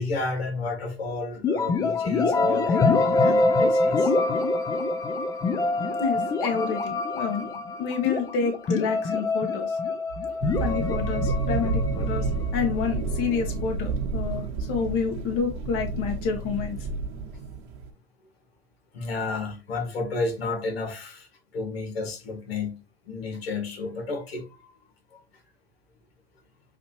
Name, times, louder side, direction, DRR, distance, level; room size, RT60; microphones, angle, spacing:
voice 1, 0.0-4.1 10.1-10.6 17.3-17.5 18.9-22.7 23.1-24.7 25.1-25.2, left 3 dB, 75° left, 1.6 m, -32 dB
sound 1, 1.4-13.1, left 3 dB, 10° left, 0.3 m, -25 dB
voice 2, 6.0-9.8 10.6-16.8, left 6 dB, 45° left, 1.3 m, -29 dB
sound 2, 10.4-17.9, right 4 dB, 50° right, 1.1 m, -30 dB
6.7 x 2.7 x 2.8 m
hypercardioid pair, 110°, 31 cm